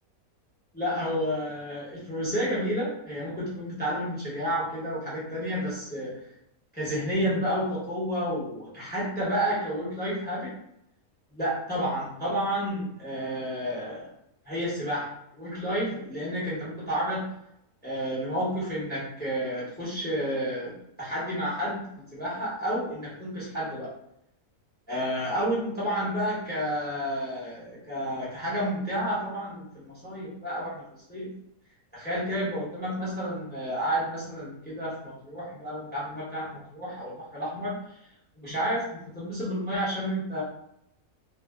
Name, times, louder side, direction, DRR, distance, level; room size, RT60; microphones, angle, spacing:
voice 1, 0.7-6.2 6.7-10.6 11.3-14.1 14.4-15.1 15.3-17.3 17.8-21.8 22.1-23.9 24.9-30.8 31.1-31.3 31.9-37.8 38.4-40.4, equal, 10° left, -8 dB, 0.6 m, -30 dB
2.6 x 2.0 x 2.3 m, 0.77 s
omnidirectional pair, 1.5 m